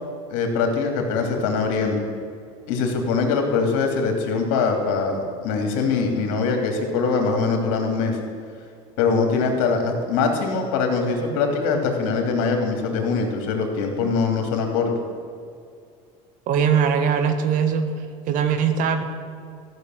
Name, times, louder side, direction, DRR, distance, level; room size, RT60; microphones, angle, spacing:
voice 1, 0.3-2.0 2.7-8.2 9.0-14.9, left 4 dB, 75° left, 3 dB, 2.9 m, -22 dB
voice 2, 16.5-17.9 18.3-19.0, right 7 dB, 55° right, 8 dB, 1.5 m, -20 dB
14.0 x 6.9 x 9.3 m, 2.3 s
supercardioid pair, 105°, 16 cm